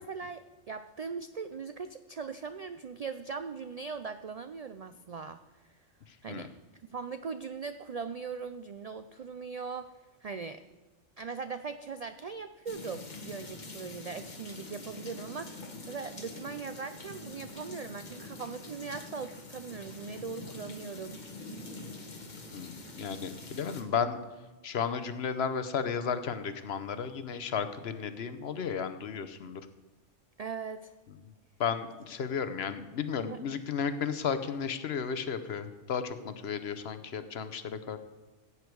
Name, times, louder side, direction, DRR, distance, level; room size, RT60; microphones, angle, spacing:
voice 1, 0.0-5.4 6.2-6.5 6.9-9.9 10.2-10.6 11.2-21.2 30.4-30.9 33.3-33.4, right 5 dB, 75° right, 10 dB, 0.3 m, -40 dB
sound 1, 12.7-23.8, left 2 dB, 40° left, 1.4 m, -45 dB
voice 2, 22.5-24.2 24.6-29.6 31.6-38.0, left 6 dB, 60° left, 11 dB, 1.0 m, -33 dB
15.5 x 8.3 x 4.6 m, 1.2 s
omnidirectional pair, 1.2 m